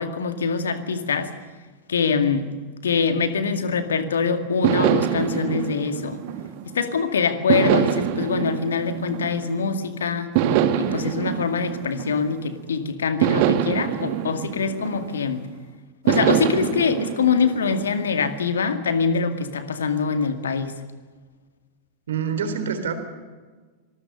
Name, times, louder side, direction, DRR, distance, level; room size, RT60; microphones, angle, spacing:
voice 1, 0.0-1.3 1.9-2.5 2.8-6.2 6.7-10.3 10.7-15.4 16.0-20.7, left 5 dB, 65° left, 8 dB, 2.1 m, -24 dB
sound 1, 4.6-6.9 7.5-9.8 10.3-12.6 13.2-15.5 16.1-18.3, right 10 dB, 45° right, 1.7 m, -24 dB
voice 2, 22.1-22.9, right 7 dB, 65° right, 9 dB, 3.6 m, -26 dB
26.0 x 20.0 x 6.7 m, 1.4 s
figure-of-eight pair, 90°, 0 cm